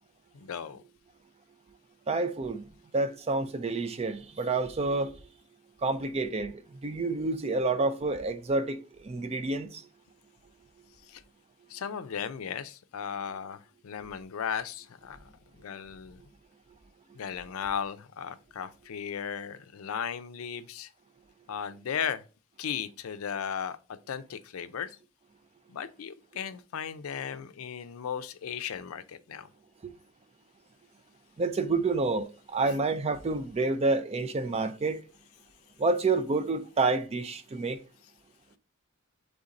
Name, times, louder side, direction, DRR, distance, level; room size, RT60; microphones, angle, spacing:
voice 1, 0.3-0.8 11.0-11.2 11.7-15.3 15.6-16.2 17.1-20.9 21.5-22.2 22.6-25.0 25.7-29.5, left 7 dB, 80° left, 0.4 m, -36 dB
voice 2, 2.1-2.6 2.9-5.1 5.8-9.8 31.4-35.0 35.8-37.8, right 3 dB, 30° right, 0.4 m, -29 dB
3.8 x 3.5 x 4.0 m
head